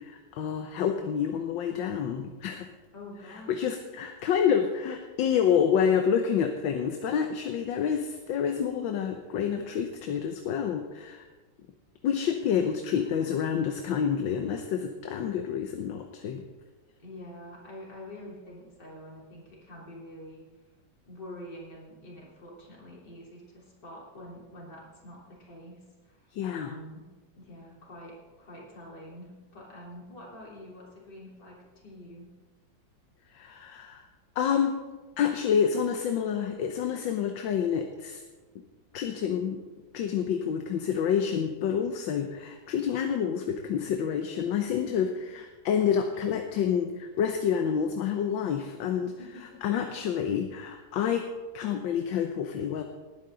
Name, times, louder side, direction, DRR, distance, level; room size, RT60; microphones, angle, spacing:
voice 1, 0.0-2.7 3.5-11.3 12.0-16.4 26.3-26.8 33.3-34.0 34.4-34.8 35.2-38.2 38.9-39.6 39.9-45.1 45.6-49.1 49.6-52.8, left 7 dB, 80° left, 5 dB, 1.6 m, -28 dB
voice 2, 2.9-3.8 12.5-13.3 17.0-20.4 21.0-26.2 26.5-27.0 27.4-31.6 31.8-32.3 44.7-45.3 45.8-46.1 49.2-50.0, left 1 dB, 60° left, -4 dB, 4.0 m, -46 dB
19.0 x 10.5 x 3.8 m, 1.3 s
omnidirectional pair, 2.1 m